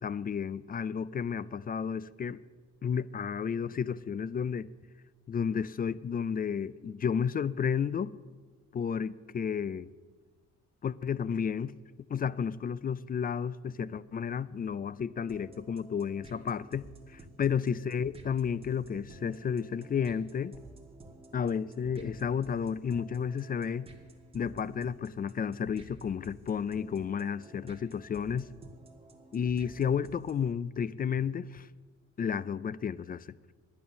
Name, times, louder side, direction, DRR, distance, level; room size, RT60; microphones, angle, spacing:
voice 1, 0.0-2.4 2.8-4.7 5.3-8.1 8.7-9.9 10.8-11.7 12.1-20.5 21.3-23.9 24.3-28.5 29.3-31.7 32.2-33.3, left 7 dB, 30° left, 19 dB, 0.4 m, -32 dB
sound 1, 15.3-30.5, right 2 dB, 20° right, 1.7 m, -53 dB
10.5 x 8.6 x 6.5 m, 1.4 s
cardioid pair, 90°, 30 cm